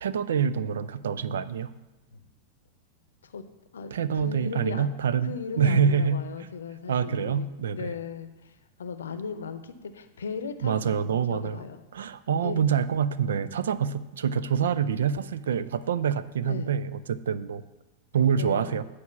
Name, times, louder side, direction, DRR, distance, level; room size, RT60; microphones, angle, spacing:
voice 1, 0.0-1.7 3.9-6.2 6.9-7.9 10.6-11.6 11.9-17.6 18.1-18.8, right 7 dB, 65° right, 15 dB, 0.4 m, -26 dB
voice 2, 3.7-4.9 5.2-7.5 7.7-11.8 12.4-12.6 16.4-16.7 18.3-18.8, left 5 dB, 65° left, 10 dB, 0.7 m, -37 dB
9.4 x 4.9 x 7.0 m, 1.1 s
figure-of-eight pair, 90°, 0 cm